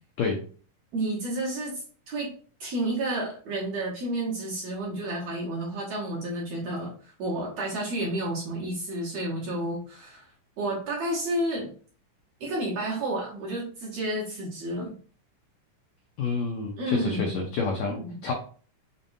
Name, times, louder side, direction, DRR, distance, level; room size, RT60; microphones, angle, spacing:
voice 1, 0.9-2.3 2.6-10.3 10.6-11.7 12.4-14.9 16.8-17.4 17.9-18.2, right 1 dB, 60° right, -4 dB, 1.9 m, -31 dB
voice 2, 16.2-18.3, left 4 dB, 80° left, 1 dB, 1.6 m, -29 dB
6.9 x 2.5 x 2.6 m, 0.41 s
omnidirectional pair, 4.0 m